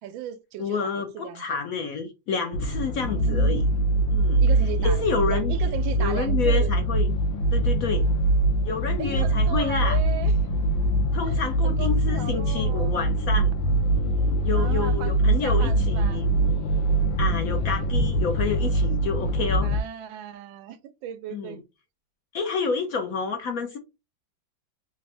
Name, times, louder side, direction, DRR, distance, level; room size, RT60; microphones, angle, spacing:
voice 1, 0.0-1.6 3.0-3.7 4.4-6.7 9.0-10.3 11.2-12.9 14.5-16.2 19.6-21.6, right 10 dB, 85° right, 1.4 m, -37 dB
voice 2, 0.6-3.7 4.1-4.4 4.8-5.5 6.0-7.1 7.5-8.1 8.6-10.0 11.1-13.5 14.4-16.3 17.2-19.7 21.3-21.6 22.3-23.8, left 5 dB, 65° left, 0.9 m, -29 dB
sound 1, 2.5-19.8, right 1 dB, 85° left, 1.4 m, -23 dB
3.7 x 2.5 x 3.3 m
omnidirectional pair, 2.1 m